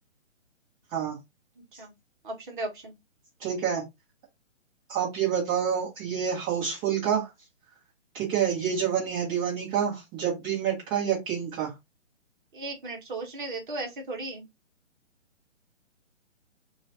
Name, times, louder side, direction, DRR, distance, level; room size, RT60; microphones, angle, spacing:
voice 1, 2.2-2.9 12.5-14.5, right 2 dB, 40° right, 1.1 m, -36 dB
voice 2, 3.4-3.8 4.9-7.3 8.1-11.7, right 8 dB, 10° right, 0.9 m, -28 dB
3.0 x 2.4 x 3.8 m
figure-of-eight pair, 135°, 38 cm